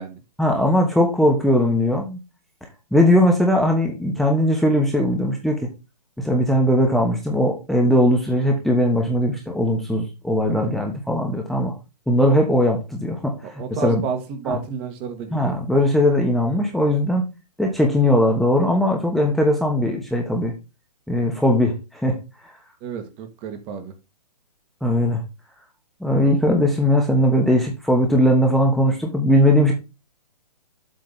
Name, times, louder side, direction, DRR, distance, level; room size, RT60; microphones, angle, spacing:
voice 1, 0.4-2.2 2.9-5.6 6.2-11.7 12.1-13.3 13.8-14.0 14.5-14.6 15.3-17.2 17.6-20.5 21.1-22.2 24.8-25.2 26.0-29.7, equal, ahead, 0 dB, 1.2 m, -19 dB
voice 2, 13.4-15.6 22.8-23.9, right 6 dB, 25° right, 7 dB, 1.5 m, -31 dB
7.8 x 3.7 x 5.5 m, 0.26 s
hypercardioid pair, 135°, 21 cm